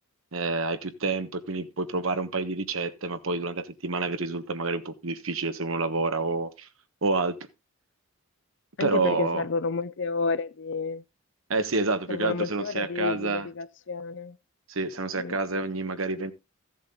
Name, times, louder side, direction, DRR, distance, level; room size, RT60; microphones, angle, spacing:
voice 1, 0.3-6.7 7.0-7.4 8.8-9.4 11.5-13.5 14.7-16.3, right 3 dB, 70° right, 1.3 m, -28 dB
voice 2, 8.8-11.0 12.1-14.4 15.2-15.4, left 4 dB, 60° left, 0.6 m, -30 dB
14.5 x 7.3 x 3.8 m
head